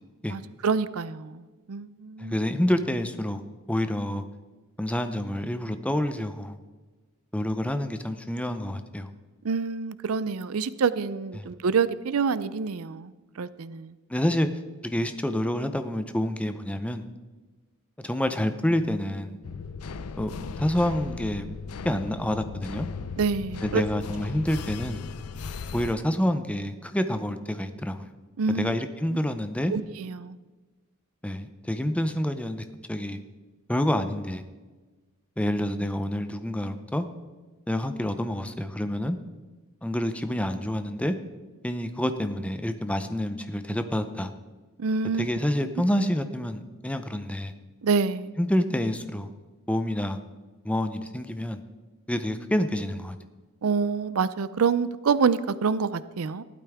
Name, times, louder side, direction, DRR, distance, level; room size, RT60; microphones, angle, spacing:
voice 1, 0.3-2.4 9.4-13.9 23.2-23.8 28.4-28.7 29.7-30.4 44.8-45.3 47.8-48.3 53.6-56.4, right 5 dB, 75° right, 16 dB, 0.5 m, -27 dB
voice 2, 2.2-3.4 3.7-4.2 4.8-6.6 7.3-9.1 11.3-11.5 14.1-14.5 14.8-17.0 18.0-19.4 20.2-21.5 21.8-22.9 23.6-25.0 25.7-28.1 28.5-29.7 31.2-33.2 33.7-34.4 35.4-37.1 37.7-39.2 39.8-41.2 41.6-44.3 45.2-47.5 48.4-49.3 49.7-50.2 50.6-51.6 52.1-53.2, left 1 dB, 5° left, 8 dB, 0.6 m, -28 dB
sound 1, 19.4-25.9, left 4 dB, 90° left, 0.5 m, -37 dB
15.5 x 12.0 x 3.6 m, 1.3 s
head